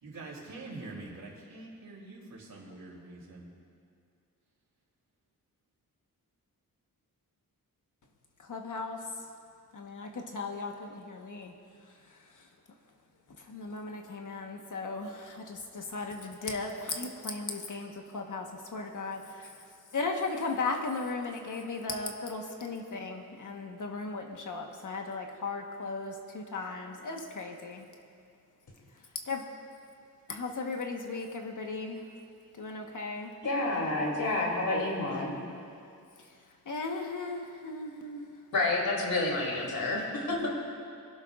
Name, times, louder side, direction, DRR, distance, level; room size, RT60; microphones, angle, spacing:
voice 1, 0.0-3.4, right 2 dB, 80° right, -3 dB, 3.3 m, -45 dB
voice 2, 8.5-9.0 9.7-11.5 13.5-18.5 18.7-19.5 19.9-27.9 29.3-29.4 30.3-32.0 32.6-33.3 36.7-38.3 40.4-40.5, left 3 dB, 55° left, 2 dB, 1.4 m, -36 dB
voice 3, 33.4-35.4 38.5-40.5, left 2 dB, 75° left, -2 dB, 3.1 m, -29 dB
26.0 x 12.0 x 2.5 m, 2.4 s
wide cardioid pair, 145°, 36 cm